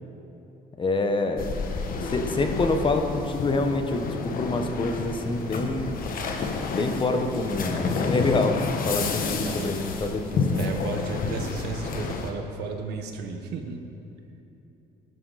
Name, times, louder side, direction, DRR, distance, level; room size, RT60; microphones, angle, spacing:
voice 1, 0.8-1.6 2.0-5.9 6.7-8.6 8.8-10.8, left 2 dB, 30° left, 5 dB, 1.2 m, -26 dB
sound 1, 1.4-12.3, left 4 dB, 55° left, 1.5 m, -30 dB
voice 2, 9.0-9.7 10.5-13.8, right 5 dB, 80° right, 4 dB, 1.4 m, -34 dB
18.0 x 12.5 x 4.2 m, 2.9 s
cardioid pair, 110°, 17 cm